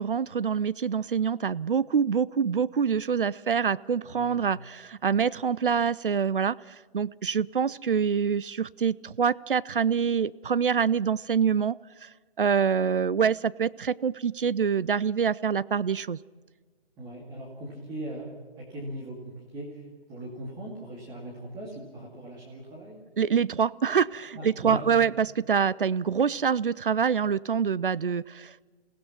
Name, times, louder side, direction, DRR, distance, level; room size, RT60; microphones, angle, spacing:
voice 1, 0.0-11.8 12.0-12.1 12.4-16.2 23.2-28.7, right 6 dB, 55° right, 19 dB, 0.6 m, -26 dB
voice 2, 17.0-23.0 24.3-25.0, right 1 dB, 10° right, -4 dB, 2.3 m, -40 dB
28.5 x 17.0 x 6.0 m, 1.4 s
figure-of-eight pair, 150°, 32 cm